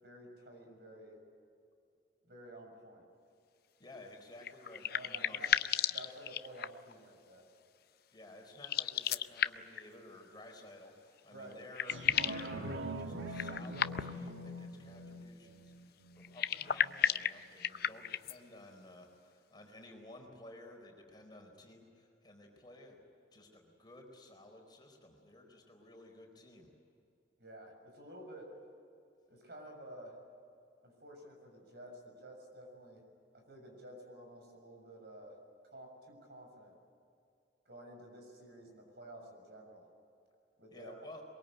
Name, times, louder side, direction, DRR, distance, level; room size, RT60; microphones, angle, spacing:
voice 1, 0.0-1.2 2.2-3.1 4.8-5.5 5.9-7.5 11.3-11.6 27.4-28.5 29.3-30.1 30.8-33.0 33.3-35.3 35.7-36.7 37.6-39.8 40.6-41.2, right 1 dB, 60° right, 2 dB, 6.7 m, -52 dB
voice 2, 3.8-5.5 8.1-23.0 23.3-26.7 40.7-41.2, left 1 dB, 25° left, 2 dB, 4.4 m, -54 dB
sound 1, 4.4-6.9 8.5-9.8 11.2-11.3 11.5-12.5 13.3-14.3 16.2-18.4, left 9 dB, 55° left, 0.6 m, -34 dB
sound 2, 11.9-16.9 17.4-17.5, right 1 dB, 85° right, 1.8 m, -43 dB
23.0 x 22.5 x 9.1 m, 2.5 s
head